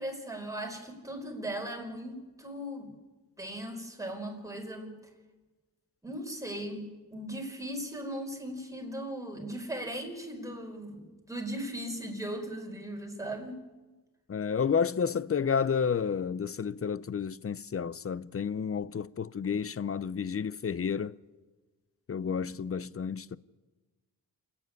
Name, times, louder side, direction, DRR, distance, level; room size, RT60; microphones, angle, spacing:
voice 1, 0.0-2.9 3.4-5.0 6.0-13.7, right 1 dB, 10° right, 4.9 m, -38 dB
voice 2, 14.3-21.1 22.1-23.4, left 6 dB, 35° left, 0.6 m, -31 dB
28.0 x 9.8 x 9.6 m
cardioid pair, 70°, 40 cm